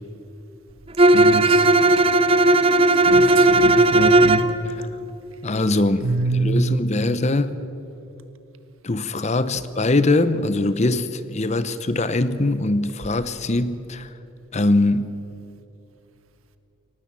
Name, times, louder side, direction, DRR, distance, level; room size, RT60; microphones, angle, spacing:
Bowed string instrument, 1.0-4.5, right 2 dB, 25° right, 0.7 m, -15 dB
voice 1, 1.1-1.7 3.1-4.4 6.0-6.8, right 2 dB, 85° right, 1.6 m, -24 dB
voice 2, 5.4-7.6 8.8-14.1 14.5-15.2, left 2 dB, 35° left, 0.8 m, -22 dB
22.5 x 18.5 x 7.5 m
head